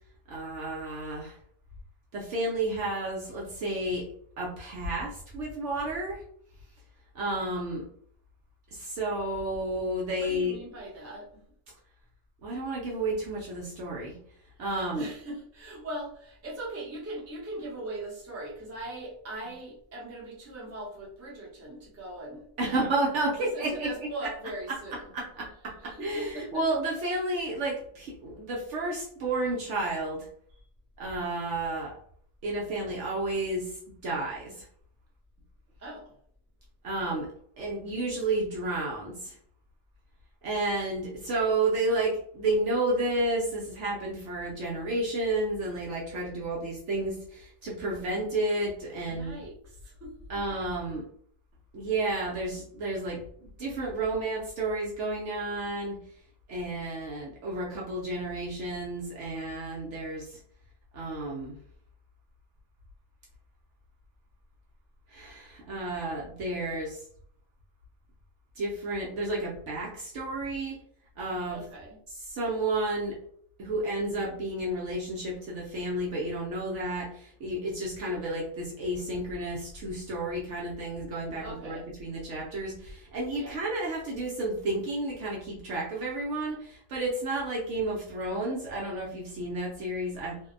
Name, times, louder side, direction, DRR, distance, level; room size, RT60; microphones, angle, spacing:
voice 1, 0.3-1.4 2.1-4.1 4.4-6.2 7.1-7.9 8.7-10.6 12.4-14.2 14.6-15.1 22.6-24.1 24.7-30.3 31.0-32.0 32.4-34.7 36.8-37.3 37.6-39.4 40.4-49.3 50.3-51.0 51.7-56.0 56.5-60.4 60.9-61.5 65.1-67.0 68.6-70.8 71.2-71.6 72.1-73.2 73.6-90.4, right 2 dB, 65° right, -3 dB, 0.8 m, -31 dB
voice 2, 10.2-11.4 14.6-22.9 23.3-26.7 30.5-30.6 35.8-36.1 49.1-50.4 71.5-72.0 81.4-81.9 83.3-83.6, right 1 dB, 20° right, -5 dB, 0.4 m, -40 dB
2.6 x 2.0 x 2.4 m, 0.62 s
omnidirectional pair, 1.6 m